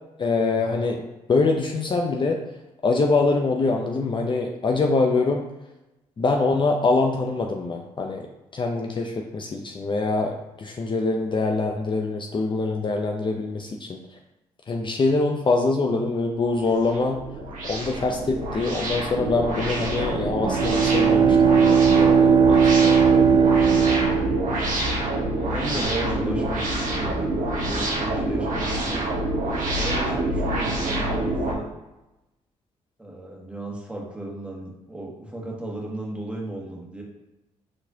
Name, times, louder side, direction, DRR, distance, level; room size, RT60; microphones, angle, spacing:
voice 1, 0.2-2.4 2.8-5.4 6.2-8.3 8.5-14.0 14.7-17.2 17.7-23.0, left 3 dB, 35° left, 2 dB, 0.6 m, -24 dB
sound 1, 16.5-31.5, right 1 dB, 70° right, 1.2 m, -27 dB
Bowed string instrument, 20.4-25.0, right 6 dB, 35° right, 0.4 m, -18 dB
voice 2, 25.5-29.0 29.7-31.7 33.0-37.0, right 1 dB, 10° right, -2 dB, 1.4 m, -34 dB
4.8 x 4.1 x 2.7 m, 0.98 s
supercardioid pair, 65°, 14 cm